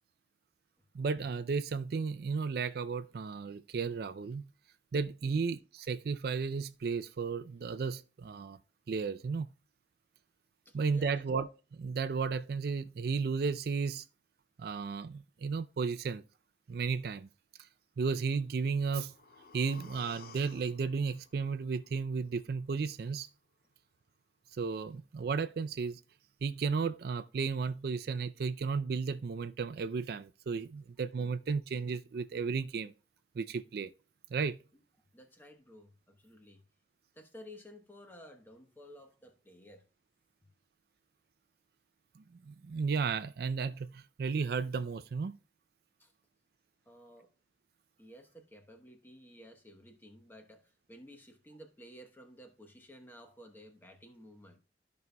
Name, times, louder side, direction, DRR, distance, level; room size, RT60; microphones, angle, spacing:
voice 1, 0.9-4.4 4.9-8.6 8.9-9.5 10.7-11.5 11.8-14.0 14.6-16.2 16.7-17.3 18.0-19.1 19.5-23.3 24.5-26.0 26.4-32.9 33.4-33.9 34.3-34.6 42.2-45.4, right 5 dB, 55° right, 0.4 m, -34 dB
voice 2, 5.2-5.5 10.6-11.3 34.7-34.8 35.1-36.6 37.1-39.8 46.0-46.1 46.8-47.3 48.0-54.6, equal, 10° left, 1.0 m, -54 dB
sound 1, 18.6-22.6 22.9-23.0, left 4 dB, 50° left, 0.7 m, -56 dB
13.5 x 5.3 x 2.2 m
head